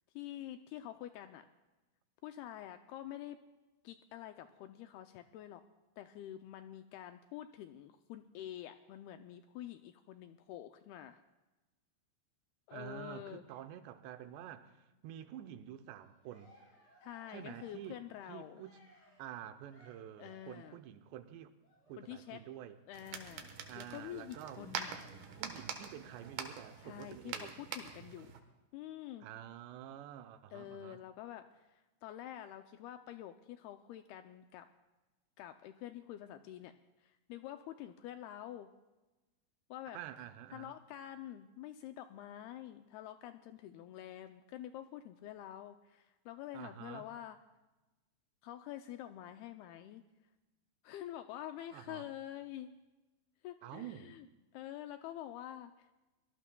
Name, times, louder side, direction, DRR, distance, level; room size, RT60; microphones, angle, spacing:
voice 1, 0.2-1.5 2.2-3.4 3.8-5.6 6.0-11.2 12.7-13.4 17.0-18.6 20.2-20.8 22.0-22.4 22.9-23.5 23.8-25.0 26.8-28.3 28.7-29.3 30.5-34.7 35.4-36.7 37.0-38.7 39.7-40.0 40.5-47.4 48.4-50.0 50.8-52.7 53.4-54.3 54.5-55.9, left 12 dB, 80° left, 8 dB, 2.3 m, -47 dB
voice 2, 12.7-16.5 17.3-18.0 18.3-18.8 19.2-21.5 21.9-22.8 23.7-24.6 25.4-27.5 29.2-31.0 39.9-40.7 46.5-47.1 51.7-52.1 53.6-54.1, right 11 dB, 85° right, 9 dB, 2.9 m, -48 dB
Cheering, 15.9-20.9 21.6-27.2, equal, 35° left, 6.4 m, -65 dB
sound 1, 22.9-28.4, right 7 dB, 70° right, 2.9 m, -45 dB
23.5 x 18.5 x 2.3 m, 1.1 s
omnidirectional pair, 4.9 m